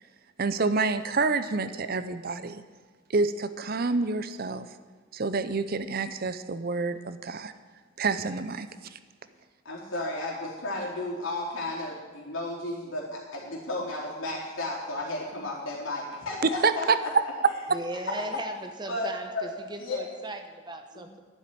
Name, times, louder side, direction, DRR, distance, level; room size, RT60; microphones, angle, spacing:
voice 1, 0.4-2.6 3.1-4.7 5.1-7.5 8.0-9.0 16.4-17.0, right 4 dB, 50° right, 12 dB, 0.6 m, -28 dB
voice 2, 9.6-17.1 18.1-18.2 18.9-19.5 19.8-20.1 20.9-21.0, left 2 dB, 80° left, -4 dB, 4.1 m, -33 dB
voice 3, 17.7-21.2, right 1 dB, 20° right, 6 dB, 1.0 m, -38 dB
11.0 x 7.5 x 9.9 m, 1.4 s
head